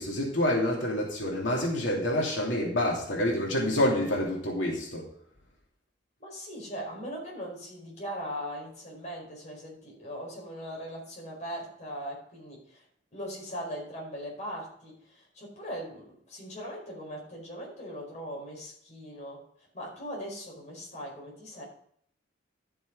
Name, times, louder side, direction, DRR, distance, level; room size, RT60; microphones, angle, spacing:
voice 1, 0.0-5.0, left 1 dB, 90° left, -3 dB, 2.8 m, -27 dB
voice 2, 6.2-12.8 13.1-19.4 19.7-21.6, equal, 40° left, -3 dB, 4.8 m, -40 dB
12.5 x 6.9 x 5.0 m, 0.64 s
head